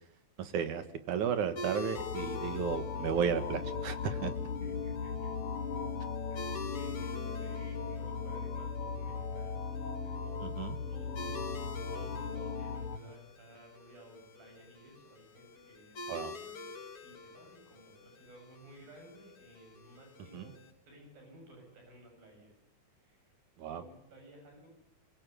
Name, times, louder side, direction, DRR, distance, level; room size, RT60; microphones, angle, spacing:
voice 1, 0.4-4.3 10.4-10.8 16.1-16.3 20.3-20.4 23.6-23.8, right 7 dB, 65° right, 11 dB, 2.7 m, -34 dB
sound 1, 1.6-20.7, left 2 dB, 40° left, 3.2 m, -48 dB
sound 2, 2.0-13.0, left 5 dB, 75° left, 3.5 m, -37 dB
voice 2, 4.6-5.3 5.6-5.9 6.3-10.4 10.9-20.6 20.9-22.5 23.0-24.7, right 1 dB, 80° right, 2 dB, 9.6 m, -56 dB
25.0 x 22.5 x 9.9 m, 0.73 s
omnidirectional pair, 4.0 m